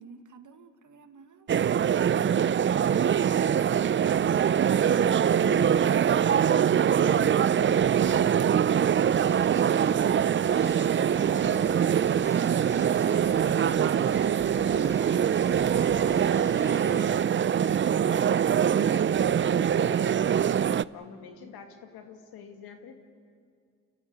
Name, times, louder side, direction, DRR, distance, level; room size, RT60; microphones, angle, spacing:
voice 1, 0.0-1.6, right 5 dB, 55° right, 8 dB, 1.8 m, -48 dB
sound 1, 1.5-20.8, right 8 dB, 35° right, 0.5 m, -23 dB
voice 2, 5.4-8.0 14.6-15.3 16.6-17.1 18.2-22.9, left 6 dB, 80° left, 5 dB, 2.2 m, -45 dB
sound 2, 9.2-17.2, equal, 10° left, 2.6 m, -44 dB
sound 3, 11.7-12.2 14.4-17.0, right 4 dB, 70° right, 3.2 m, -51 dB
29.0 x 14.5 x 8.2 m, 2.2 s
supercardioid pair, 50°, 36 cm